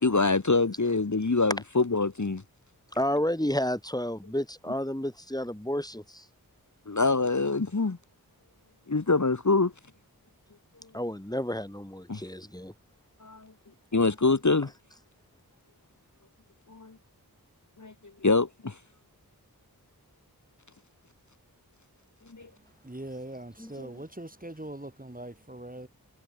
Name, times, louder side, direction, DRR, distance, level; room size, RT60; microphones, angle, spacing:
voice 1, 0.0-2.4 6.9-8.0 8.9-9.7 12.1-12.2 13.2-13.5 13.9-14.7 16.7-16.9 17.8-17.9 18.2-18.8 22.3-22.5, left 3 dB, 50° left, 1.8 m, -25 dB
voice 2, 2.9-6.3 10.9-12.7 23.6-24.1, equal, 10° left, 5.4 m, -31 dB
voice 3, 22.8-25.9, right 1 dB, 25° right, 2.9 m, -41 dB
wide cardioid pair, 50°, 37 cm